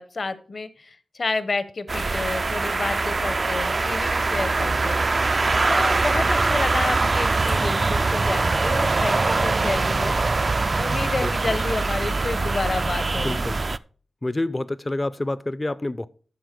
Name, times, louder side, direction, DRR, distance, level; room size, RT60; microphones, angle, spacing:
voice 1, 0.0-5.0 5.7-10.2 10.8-13.4, left 3 dB, 45° left, 0.8 m, -30 dB
sound 1, 1.9-13.8, right 3 dB, 40° right, 0.3 m, -23 dB
voice 2, 11.2-11.6 13.2-13.6 14.2-16.1, left 2 dB, 20° left, 0.5 m, -28 dB
12.5 x 4.4 x 5.1 m
wide cardioid pair, 120°, 0 cm